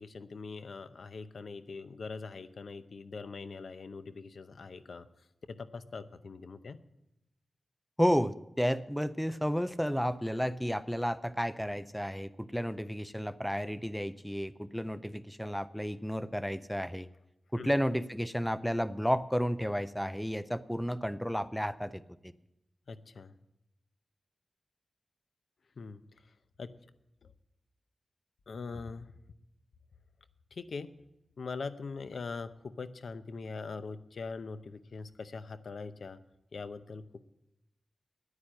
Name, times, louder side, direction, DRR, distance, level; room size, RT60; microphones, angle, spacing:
voice 1, 0.0-5.1 5.5-6.8 17.6-17.7 22.9-23.3 25.8-26.0 26.6-26.7 27.2-27.3 28.5-29.1 30.5-30.9 31.4-36.2 36.5-37.2, left 4 dB, 75° left, 12 dB, 0.6 m, -42 dB
voice 2, 8.0-17.1 17.5-22.3, equal, ahead, 15 dB, 0.4 m, -32 dB
10.5 x 9.6 x 7.6 m, 0.88 s
wide cardioid pair, 135°, 0 cm